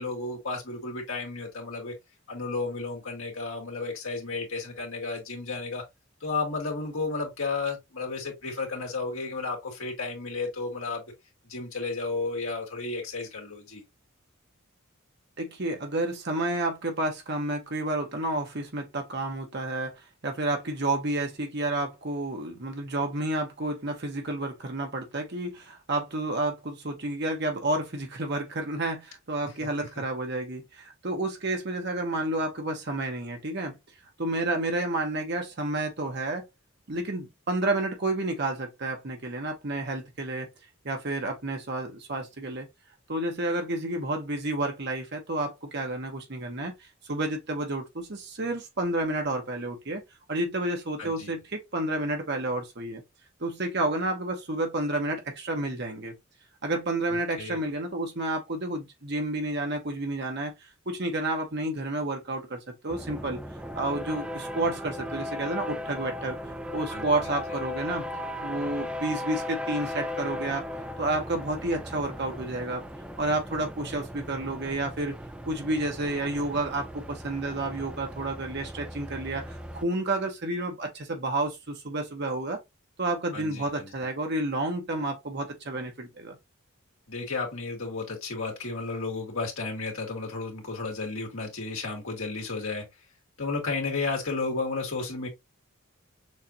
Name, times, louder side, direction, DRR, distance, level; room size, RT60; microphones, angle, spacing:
voice 1, 0.0-1.9 2.3-5.8 6.2-11.0 11.5-13.8 29.4-29.7 51.0-51.3 57.1-57.6 66.9-67.4 83.3-83.9 87.1-92.9 93.4-95.3, left 3 dB, 75° left, 2.0 m, -33 dB
voice 2, 15.4-33.8 34.2-36.5 36.9-40.5 40.8-42.7 43.1-46.7 47.0-50.0 50.3-53.0 53.4-56.1 56.6-60.5 60.9-63.4 63.7-66.4 66.7-68.1 68.4-70.6 71.0-72.8 73.2-75.1 75.5-82.6 83.0-86.4, right 2 dB, 50° right, 1.0 m, -30 dB
sound 1, 62.9-79.8, left 1 dB, 5° right, 0.4 m, -37 dB
6.4 x 2.5 x 2.9 m
head